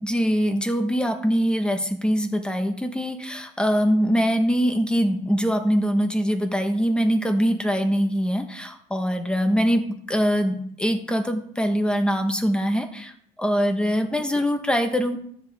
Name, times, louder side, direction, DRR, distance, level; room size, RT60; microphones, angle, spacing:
voice 1, 0.0-13.1 13.4-15.2, equal, 5° left, 5 dB, 1.3 m, -23 dB
13.0 x 7.5 x 3.6 m, 0.65 s
cardioid pair, 110°, 17 cm